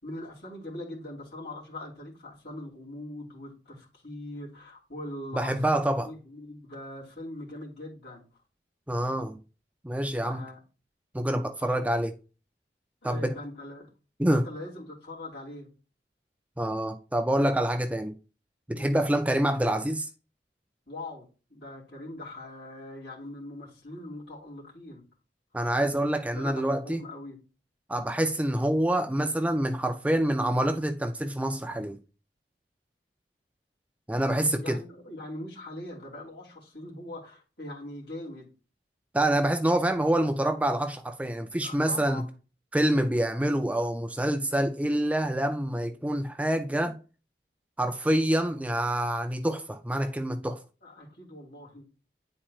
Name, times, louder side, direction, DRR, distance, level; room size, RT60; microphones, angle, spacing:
voice 1, 0.0-8.3 10.2-10.6 11.6-11.8 13.0-13.9 14.3-15.7 18.7-19.1 20.9-25.0 26.2-27.4 34.2-38.5 41.5-42.3 50.8-51.8, left 1 dB, 70° left, 2.9 m, -42 dB
voice 2, 5.3-6.1 8.9-9.4 9.8-10.5 11.1-12.1 13.0-13.3 14.2-14.4 16.6-18.1 18.7-20.1 25.5-27.0 27.9-32.0 34.1-34.8 39.1-42.2 42.7-47.0 47.8-50.6, right 1 dB, 10° right, 0.3 m, -26 dB
9.9 x 4.3 x 2.4 m
head